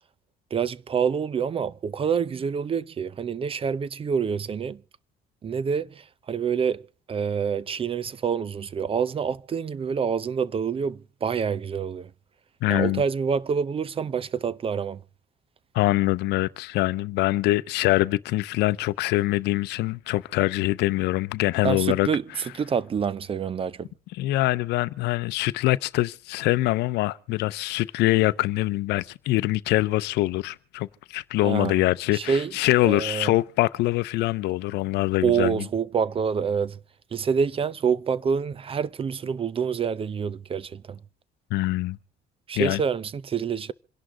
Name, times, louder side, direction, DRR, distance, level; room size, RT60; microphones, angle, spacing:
voice 1, 0.5-4.8 5.4-6.8 7.1-12.1 12.7-15.0 21.6-23.9 31.4-31.8 32.1-32.5 32.8-33.3 35.2-36.8 37.1-41.0 42.5-43.7, right 6 dB, 35° right, 0.6 m, -27 dB
voice 2, 12.6-13.0 15.7-22.1 24.1-35.7 41.5-42.0 42.6-42.8, left 18 dB, 85° left, 0.6 m, -24 dB
27.0 x 11.5 x 3.7 m
cardioid pair, 110°, 17 cm